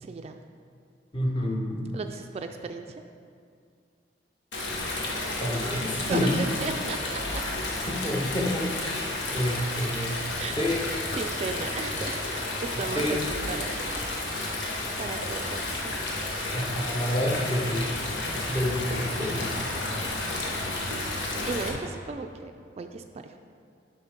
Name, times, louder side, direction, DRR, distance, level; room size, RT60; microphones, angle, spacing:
voice 1, 0.0-0.4 1.9-2.9 6.1-7.4 10.4-10.6 11.1-12.2 12.6-13.2 13.5-14.4 15.0-16.3 21.5-23.4, right 4 dB, 35° right, 6 dB, 0.3 m, -35 dB
voice 2, 1.1-1.8 4.7-4.8 5.4-6.3 7.9-10.3 10.6-10.8 12.9-13.2 16.5-17.9 18.5-19.6, equal, 30° left, -1 dB, 1.1 m, -29 dB
Stream, 4.5-21.7, left 2 dB, 90° left, 1.2 m, -31 dB
8.0 x 5.5 x 5.1 m, 2.3 s
head